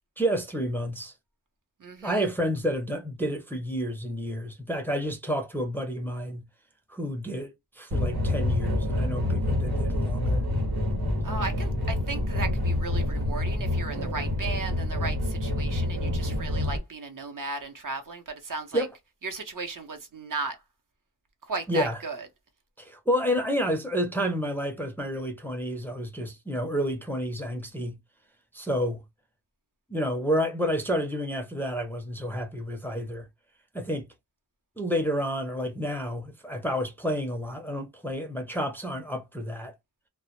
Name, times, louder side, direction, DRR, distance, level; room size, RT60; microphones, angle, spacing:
voice 1, 0.2-1.1 2.0-6.4 6.9-10.4 18.7-18.9 21.7-22.0 22.8-28.0 28.5-29.0 29.9-33.3 33.7-34.1 34.8-39.8, equal, 5° left, 0.5 m, -30 dB
voice 2, 1.8-2.3 11.2-18.9 19.2-20.6 21.4-22.3, right 3 dB, 55° right, 0.7 m, -35 dB
sound 1, 7.9-16.8, left 1 dB, 85° right, 1.0 m, -27 dB
2.1 x 2.0 x 2.9 m
wide cardioid pair, 70°, 38 cm